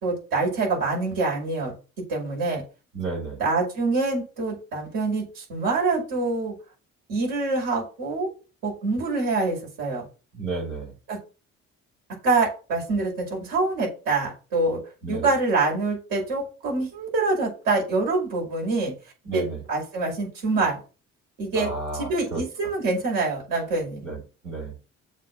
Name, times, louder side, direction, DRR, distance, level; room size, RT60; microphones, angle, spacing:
voice 1, 0.0-1.7 2.1-2.6 3.4-6.5 7.1-8.3 8.6-10.1 11.1-11.2 12.2-14.8 15.1-18.9 19.3-20.8 21.4-24.0, right 3 dB, 65° right, -1 dB, 5.6 m, -25 dB
voice 2, 2.9-3.4 10.3-10.9 15.0-15.3 19.2-19.6 21.5-22.4 24.0-24.7, right 3 dB, 85° right, -7 dB, 4.8 m, -32 dB
7.3 x 4.4 x 6.8 m, 0.33 s
figure-of-eight pair, 45°, 38 cm